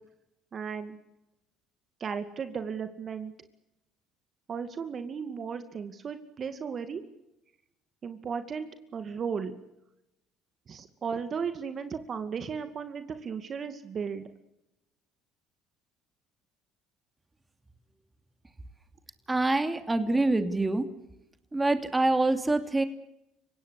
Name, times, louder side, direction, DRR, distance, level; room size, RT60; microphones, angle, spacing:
voice 1, 0.5-1.0 2.0-3.3 4.5-7.0 8.0-9.5 10.7-14.3, right 6 dB, 45° right, 9 dB, 2.3 m, -35 dB
voice 2, 19.3-20.8 21.5-22.8, right 2 dB, 15° right, 9 dB, 2.7 m, -25 dB
30.0 x 17.5 x 8.3 m, 0.88 s
hypercardioid pair, 70°, 0 cm